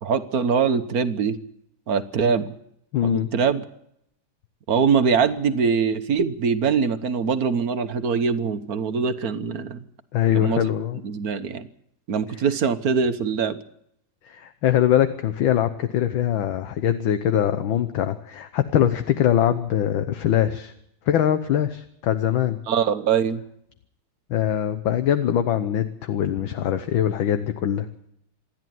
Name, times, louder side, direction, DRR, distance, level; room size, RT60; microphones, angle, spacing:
voice 1, 0.0-1.4 1.9-2.5 3.0-3.6 4.7-9.8 10.3-10.6 11.0-11.7 12.1-13.6 22.7-23.4, right 6 dB, 50° right, 10 dB, 1.4 m, -23 dB
voice 2, 2.9-3.3 10.1-11.0 14.2-20.7 21.1-22.6 24.3-27.9, left 10 dB, 70° left, 9 dB, 1.7 m, -22 dB
27.5 x 11.0 x 9.3 m, 0.75 s
omnidirectional pair, 2.3 m